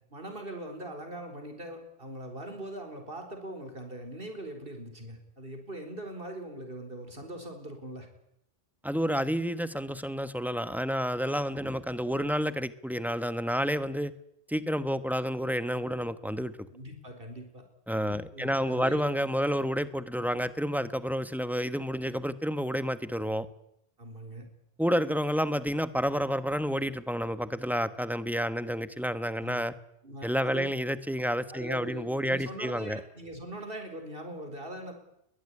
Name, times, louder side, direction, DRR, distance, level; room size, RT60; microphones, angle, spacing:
voice 1, 0.1-8.1 16.7-17.6 18.3-19.0 24.0-24.4 29.4-29.7 30.0-30.7 31.5-34.9, right 1 dB, 60° right, 5 dB, 4.7 m, -41 dB
voice 2, 8.8-14.1 14.5-16.5 17.9-23.5 24.8-29.7 30.2-33.0, equal, ahead, 12 dB, 1.2 m, -30 dB
22.0 x 19.5 x 9.9 m, 0.78 s
omnidirectional pair, 1.1 m